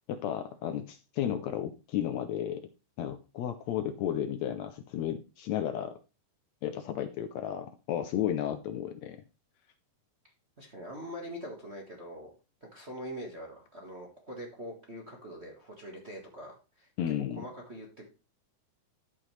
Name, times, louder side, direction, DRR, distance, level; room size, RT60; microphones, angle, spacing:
voice 1, 0.1-2.7 3.0-5.9 6.6-9.2 17.0-17.4, left 10 dB, 75° left, 9 dB, 1.6 m, -33 dB
voice 2, 10.6-12.3 12.6-18.1, equal, 40° right, 0 dB, 0.9 m, -43 dB
12.5 x 5.5 x 3.2 m, 0.30 s
omnidirectional pair, 3.7 m